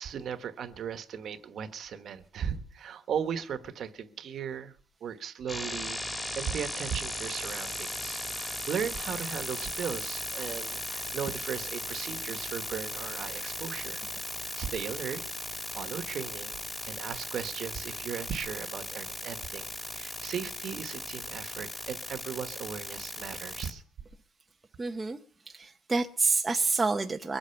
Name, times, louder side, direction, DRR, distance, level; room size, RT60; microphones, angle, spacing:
voice 1, 0.0-4.7 5.0-14.0 14.6-15.2 15.7-16.6 16.8-23.8, right 8 dB, 45° right, 10 dB, 1.3 m, -37 dB
sound 1, 5.5-23.7, left 1 dB, 10° left, 2.3 m, -37 dB
voice 2, 24.8-25.2 25.5-27.4, right 4 dB, 15° right, 4 dB, 0.7 m, -28 dB
23.0 x 8.6 x 5.8 m, 0.42 s
cardioid pair, 175°, 0 cm